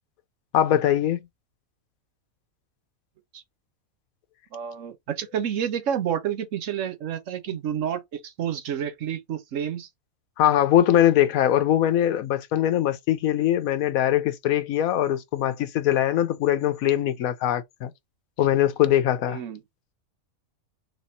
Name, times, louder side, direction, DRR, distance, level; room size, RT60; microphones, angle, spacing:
voice 1, 0.5-1.2 10.4-17.9 18.4-19.4, left 11 dB, 90° left, 1.1 m, -22 dB
voice 2, 4.5-9.9 19.3-19.6, right 9 dB, 65° right, 1.1 m, -29 dB
3.5 x 2.9 x 4.1 m
omnidirectional pair, 1.5 m